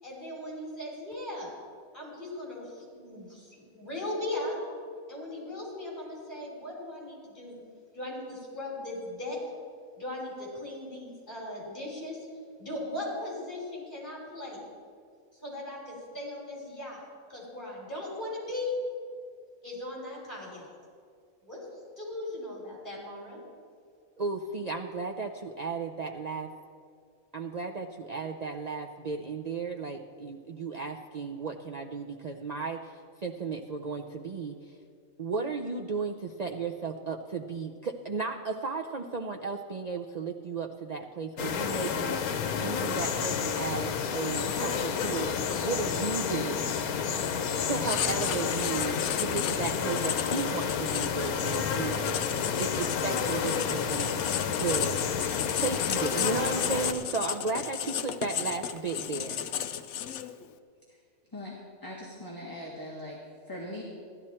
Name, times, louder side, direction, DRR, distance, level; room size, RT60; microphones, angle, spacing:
voice 1, 0.0-1.5 1.9-4.6 5.1-7.6 7.9-9.4 10.0-12.3 12.6-14.7 15.4-17.0 17.3-18.7 19.6-20.7 21.5-21.6 22.0-23.4, left 1 dB, 35° left, -4 dB, 3.6 m, -38 dB
voice 2, 24.2-26.5 27.3-34.6 35.2-45.3 45.6-46.8 47.6-54.1 54.5-55.0 55.5-59.5, right 4 dB, 85° right, 2 dB, 0.3 m, -34 dB
sound 1, 41.4-56.9, left 6 dB, 85° left, 1.2 m, -30 dB
Writing, 47.9-60.5, left 9 dB, 65° left, 0.8 m, -34 dB
voice 3, 61.8-63.2 63.5-63.8, left 1 dB, 15° left, -3 dB, 1.5 m, -40 dB
15.5 x 12.0 x 4.3 m, 2.3 s
omnidirectional pair, 1.5 m